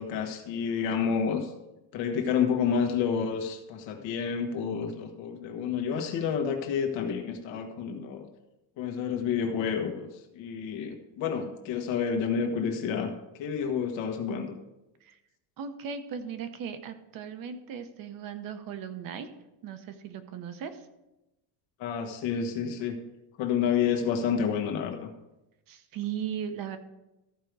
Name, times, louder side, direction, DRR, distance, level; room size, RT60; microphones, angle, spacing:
voice 1, 0.0-1.5 1.9-8.3 8.8-10.1 10.3-13.1 13.4-14.5 21.8-23.0 23.4-25.1, left 7 dB, 85° left, 4 dB, 1.5 m, -29 dB
voice 2, 15.6-19.3 19.6-20.9 25.7-26.8, right 7 dB, 50° right, 9 dB, 0.9 m, -37 dB
14.0 x 5.1 x 4.7 m, 0.96 s
cardioid pair, 170°, 44 cm